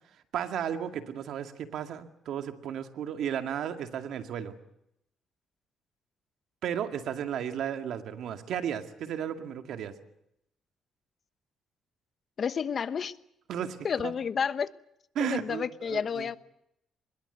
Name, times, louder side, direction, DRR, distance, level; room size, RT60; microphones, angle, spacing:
voice 1, 0.3-4.6 6.6-10.0 13.5-13.8 14.0-14.1 15.2-16.3, right 9 dB, 75° right, 2.1 m, -34 dB
voice 2, 12.4-13.1 13.8-14.7 15.2-16.4, left 7 dB, 50° left, 1.0 m, -30 dB
24.5 x 21.0 x 8.0 m
cardioid pair, 90°, 0 cm